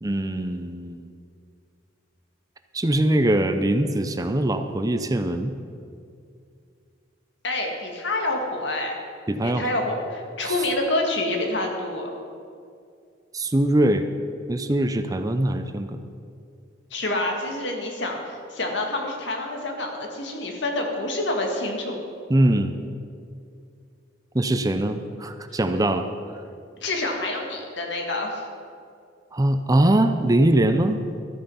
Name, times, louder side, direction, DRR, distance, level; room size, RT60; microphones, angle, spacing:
voice 1, 0.0-1.1 2.7-5.5 9.3-9.7 10.4-10.6 13.3-14.0 14.5-16.0 22.3-22.7 24.3-26.1 29.3-31.0, right 1 dB, 20° right, 8 dB, 0.5 m, -22 dB
voice 2, 7.4-9.0 9.4-12.1 16.9-22.0 26.8-28.4, left 2 dB, 75° left, 2 dB, 1.9 m, -27 dB
13.0 x 9.0 x 5.6 m, 2.4 s
head